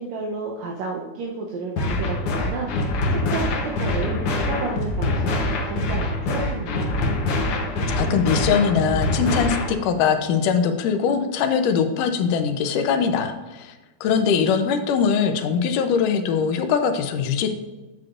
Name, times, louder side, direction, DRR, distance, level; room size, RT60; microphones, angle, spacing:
voice 1, 0.0-7.1, right 4 dB, 70° right, -2 dB, 1.8 m, -32 dB
sound 1, 1.8-9.8, left 2 dB, 65° left, 1.4 m, -24 dB
voice 2, 7.9-13.7 14.0-17.5, left 6 dB, 80° left, 6 dB, 2.3 m, -21 dB
9.1 x 7.6 x 2.5 m, 1.2 s
omnidirectional pair, 3.7 m